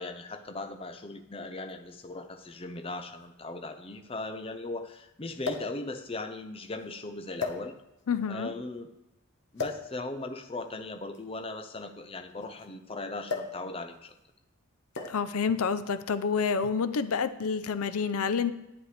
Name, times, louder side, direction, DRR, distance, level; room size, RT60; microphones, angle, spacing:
voice 1, 0.0-7.8 8.3-8.9 9.5-14.1, left 2 dB, 25° left, 6 dB, 0.6 m, -38 dB
sound 1, 1.7-1.8 2.9-3.0 3.2-3.3 5.4-5.8 6.6-6.8 7.4-8.1 9.6-9.9 11.0-12.7 13.3-13.6 13.9-14.2 14.9-15.3 16.3-16.5, left 4 dB, 50° left, 1.1 m, -36 dB
voice 2, 8.1-8.5 15.1-18.5, left 5 dB, 80° left, 13 dB, 0.5 m, -28 dB
11.0 x 9.6 x 3.3 m, 0.92 s
head